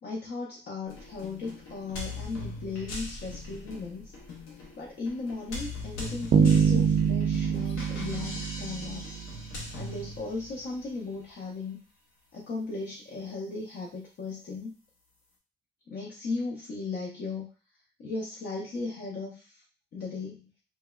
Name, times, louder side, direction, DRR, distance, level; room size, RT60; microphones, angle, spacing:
voice 1, 0.0-4.1 4.8-9.2 9.8-11.8 12.3-14.7 15.9-17.5 18.0-19.5 19.9-20.4, left 3 dB, 55° left, -3 dB, 0.7 m, -36 dB
sound 1, 0.9-10.8, left 2 dB, 90° left, 0.8 m, -41 dB
Bass guitar, 6.3-9.4, right 7 dB, 50° right, 0.4 m, -25 dB
3.3 x 2.1 x 2.3 m, 0.37 s
cardioid pair, 90°, 20 cm